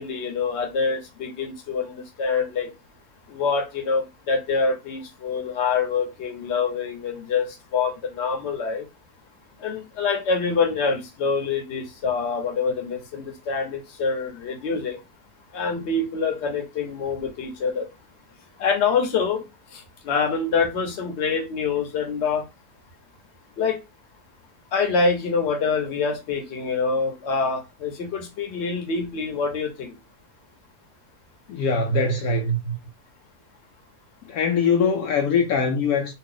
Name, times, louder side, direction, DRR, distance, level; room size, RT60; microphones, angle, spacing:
voice 1, 0.0-2.7 3.3-8.8 9.6-15.0 15.5-17.9 18.6-19.4 19.7-22.5 23.6-23.8 24.7-30.0, left 5 dB, 50° left, 1.0 m, -25 dB
voice 2, 31.5-32.7 34.2-36.1, left 4 dB, 75° left, 1.0 m, -22 dB
2.8 x 2.4 x 3.7 m
omnidirectional pair, 1.6 m